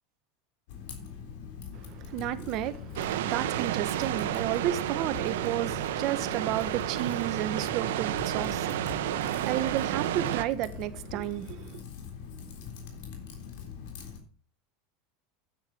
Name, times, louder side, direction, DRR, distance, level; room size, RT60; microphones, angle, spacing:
Typing, 0.7-14.2, left 6 dB, 70° left, 3.5 m, -43 dB
voice 1, 1.7-11.8, right 13 dB, 50° right, 1.2 m, -32 dB
sound 1, 3.0-10.5, right 12 dB, 80° right, 1.0 m, -31 dB
9.6 x 8.9 x 5.3 m
supercardioid pair, 120°, 0 cm